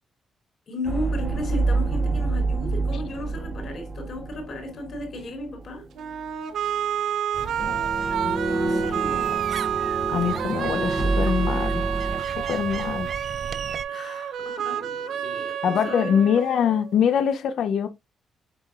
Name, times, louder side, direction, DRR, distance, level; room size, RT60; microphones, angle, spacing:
voice 1, 0.7-5.9 8.4-9.5 13.9-16.2, left 1 dB, 45° left, 3.2 m, -35 dB
sound 1, 0.8-5.7 6.0-6.2 7.6-12.2, right 2 dB, 10° right, 0.9 m, -27 dB
sound 2, 6.0-16.9, right 9 dB, 65° right, 1.0 m, -29 dB
sound 3, 7.3-13.8, right 6 dB, 45° right, 0.5 m, -36 dB
voice 2, 10.1-11.8 12.2-13.1 15.6-17.9, left 8 dB, 65° left, 0.8 m, -24 dB
7.9 x 5.7 x 2.5 m
cardioid pair, 170°, 0 cm